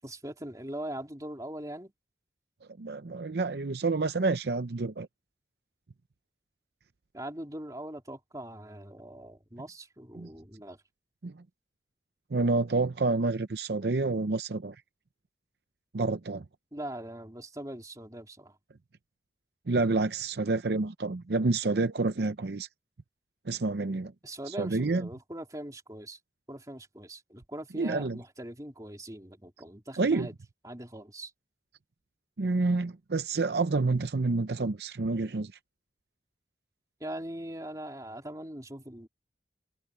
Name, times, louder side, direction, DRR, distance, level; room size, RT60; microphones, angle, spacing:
voice 1, 0.0-1.9 7.1-10.8 16.7-18.6 24.2-26.2 26.5-30.4 30.6-31.3 37.0-39.1, right 1 dB, 20° right, 3.6 m, -41 dB
voice 2, 2.8-5.1 10.2-10.3 11.2-11.3 12.3-14.8 15.9-16.4 19.7-22.7 23.5-24.1 24.6-25.0 27.8-28.2 30.0-30.3 32.4-35.5, right 3 dB, 70° right, 0.7 m, -28 dB
head